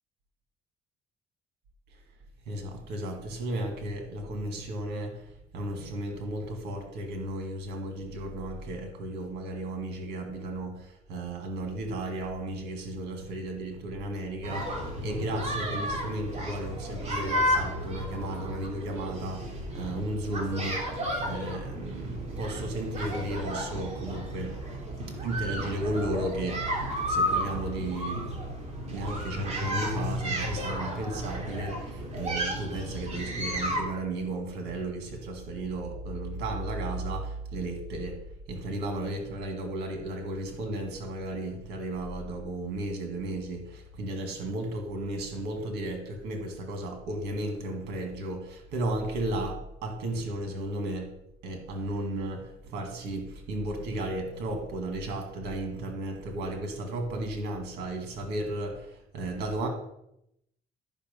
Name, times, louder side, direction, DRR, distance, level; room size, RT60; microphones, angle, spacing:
voice 1, 2.5-5.3 5.5-20.9 21.2-24.6 25.2-28.3 28.8-38.2 38.5-51.1 51.4-59.7, right 1 dB, 80° right, 4 dB, 1.9 m, -34 dB
sound 1, 14.4-33.8, equal, 40° right, 3.0 m, -33 dB
12.0 x 5.6 x 5.4 m, 0.79 s
cardioid pair, 110°, 17 cm